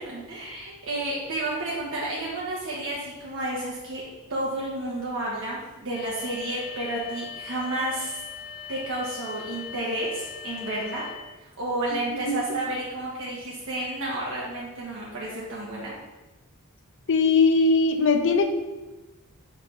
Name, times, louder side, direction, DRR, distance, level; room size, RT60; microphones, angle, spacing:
voice 1, 0.0-4.0 4.3-8.2 8.7-11.1 11.4-15.9, right 1 dB, 65° right, -5 dB, 1.3 m, -31 dB
sound 1, 5.9-11.1, left 8 dB, 85° left, 1.4 m, -40 dB
voice 2, 17.1-18.5, left 4 dB, 60° left, 6 dB, 0.7 m, -20 dB
6.4 x 5.0 x 4.0 m, 1.1 s
head